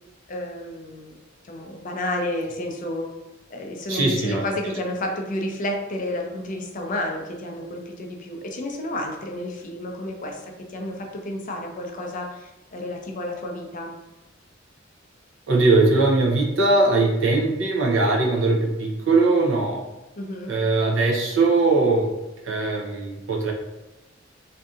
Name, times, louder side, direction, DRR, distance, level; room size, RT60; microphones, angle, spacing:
voice 1, 0.3-1.2 1.4-3.1 3.5-10.4 10.7-13.9 20.2-20.5, left 1 dB, 40° left, 2 dB, 0.4 m, -31 dB
voice 2, 3.9-4.4 15.5-19.8 20.5-22.1 22.4-23.5, right 3 dB, 70° right, -1 dB, 0.6 m, -20 dB
2.6 x 2.6 x 2.3 m, 1.0 s
head